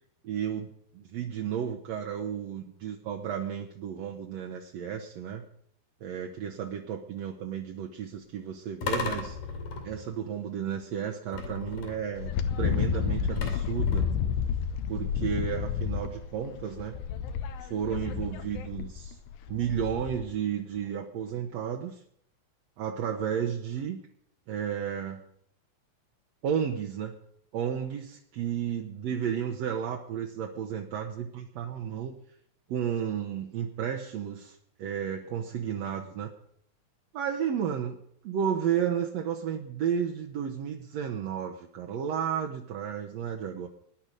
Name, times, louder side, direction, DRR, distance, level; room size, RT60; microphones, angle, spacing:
voice 1, 0.2-5.5 6.0-9.4 9.8-12.3 12.6-14.1 14.9-17.0 17.6-19.2 19.5-22.0 22.8-24.0 24.5-25.2 26.4-27.2 27.5-32.2 32.7-36.3 37.1-43.7, right 8 dB, 60° right, 2 dB, 1.9 m, -32 dB
sound 1, 8.8-10.2 11.3-12.2 13.4-14.3, left 4 dB, 70° left, 4.1 m, -35 dB
Wind, 12.2-20.3, left 7 dB, 90° left, 2.7 m, -31 dB
20.0 x 10.5 x 5.3 m, 0.70 s
omnidirectional pair, 4.1 m